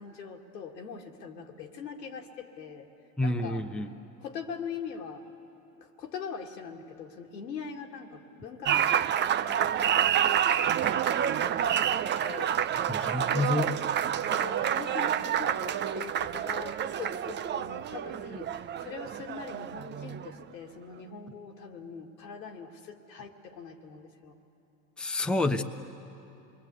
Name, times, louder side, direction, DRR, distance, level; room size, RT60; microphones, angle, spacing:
voice 1, 0.0-2.9 3.2-3.6 4.2-5.2 5.8-10.6 10.8-12.7 14.3-24.4, left 6 dB, 90° left, 2 dB, 2.1 m, -42 dB
voice 2, 3.2-3.9 12.9-13.7 25.0-25.6, left 2 dB, ahead, 5 dB, 0.8 m, -28 dB
Applause, 8.7-20.4, right 9 dB, 25° right, 0.5 m, -28 dB
27.5 x 21.5 x 8.2 m, 2.8 s
hypercardioid pair, 90°, 48 cm